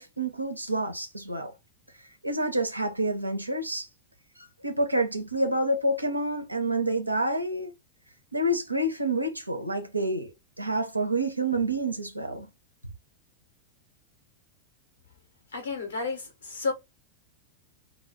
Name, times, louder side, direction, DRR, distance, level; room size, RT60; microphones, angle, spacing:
voice 1, 0.0-1.5 2.2-3.9 4.4-7.7 8.3-12.5, right 1 dB, 85° right, 0.6 m, -28 dB
voice 2, 15.5-16.7, left 4 dB, 70° left, 1.0 m, -31 dB
2.2 x 2.2 x 3.0 m
figure-of-eight pair, 90°, 0 cm